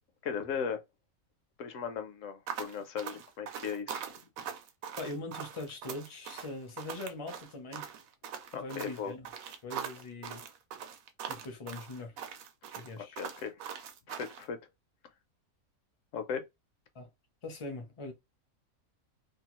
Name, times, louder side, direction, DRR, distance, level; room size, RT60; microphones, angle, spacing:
voice 1, 0.2-0.8 1.6-4.0 4.4-4.5 8.5-9.1 13.0-13.5 14.1-14.7 16.1-16.4, left 6 dB, 70° left, 0.9 m, -37 dB
sound 1, 2.5-14.4, right 8 dB, 75° right, 1.0 m, -42 dB
voice 2, 5.0-7.9 8.5-9.3 9.6-10.4 11.3-12.2 12.7-13.2 16.9-17.1 17.4-18.1, left 2 dB, 35° left, 0.5 m, -42 dB
2.8 x 2.3 x 3.0 m
omnidirectional pair, 1.5 m